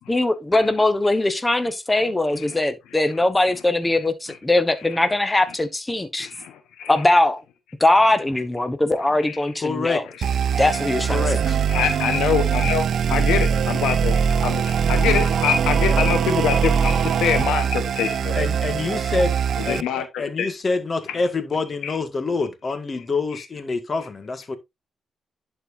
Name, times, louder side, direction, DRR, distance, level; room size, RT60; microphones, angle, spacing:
voice 1, 0.1-6.3 6.9-7.4 7.8-10.0 10.5-11.2, left 2 dB, 20° left, 1.0 m, -20 dB
voice 2, 6.2-6.9 9.2-9.4 11.7-18.4 19.7-20.5 21.8-21.9, left 8 dB, 90° left, 1.0 m, -25 dB
voice 3, 9.6-10.0 11.1-11.6 18.3-19.3 19.6-24.6, left 3 dB, 45° left, 1.7 m, -26 dB
sound 1, 10.2-19.8, right 7 dB, 70° right, 0.4 m, -21 dB
11.0 x 4.5 x 2.6 m
supercardioid pair, 55°, 0 cm